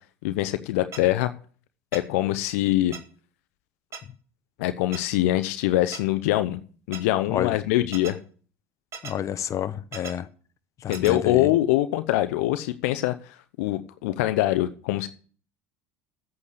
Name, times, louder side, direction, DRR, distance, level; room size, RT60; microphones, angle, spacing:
voice 1, 0.2-1.3 1.9-2.9 4.6-6.6 6.9-8.2 10.9-13.2 13.6-15.1, left 15 dB, 75° left, 0.8 m, -23 dB
sound 1, 0.9-1.0 1.9-2.0 2.9-3.0 3.9-4.0 4.9-5.0 5.9-6.0 6.9-7.0 7.9-8.1 8.9-9.1 9.9-10.1 10.9-11.1, right 5 dB, 35° right, 2.0 m, -37 dB
voice 2, 9.0-10.3 10.8-11.5, left 10 dB, 40° left, 1.0 m, -29 dB
8.5 x 8.0 x 8.3 m
hypercardioid pair, 85°, 8 cm